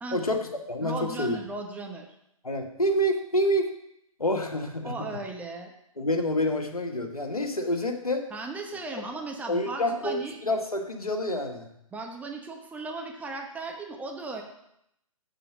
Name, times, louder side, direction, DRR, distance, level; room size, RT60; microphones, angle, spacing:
voice 1, 0.1-1.4 2.4-3.7 4.2-5.1 6.0-8.2 9.5-10.2 10.4-11.7, left 1 dB, 90° left, 4 dB, 1.7 m, -27 dB
voice 2, 0.8-2.1 4.8-5.7 8.3-10.4 11.9-14.4, right 3 dB, 10° right, 2 dB, 1.1 m, -36 dB
7.6 x 7.0 x 6.1 m, 0.77 s
figure-of-eight pair, 125°, 18 cm